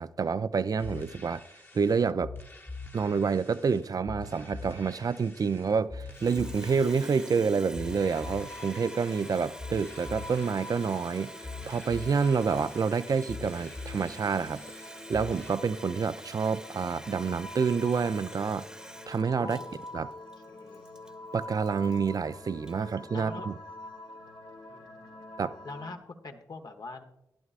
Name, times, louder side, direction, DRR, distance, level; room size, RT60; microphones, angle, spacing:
voice 1, 0.0-1.4 1.7-2.3 2.9-11.3 11.7-14.6 15.1-18.7 19.1-19.6 19.9-20.1 21.3-23.6 25.4-25.5, right 5 dB, 50° right, 0.4 m, -28 dB
sound 1, 0.8-15.5, left 3 dB, 25° left, 1.1 m, -44 dB
Water tap faucet, 6.0-22.9, equal, 10° right, 1.0 m, -47 dB
sound 2, 7.8-26.0, left 1 dB, 80° left, 1.4 m, -46 dB
voice 2, 19.4-19.8 20.5-20.8 23.1-23.5 24.7-25.1 25.6-27.0, left 3 dB, 60° left, 1.1 m, -43 dB
12.5 x 11.0 x 2.5 m
supercardioid pair, 40°, 8 cm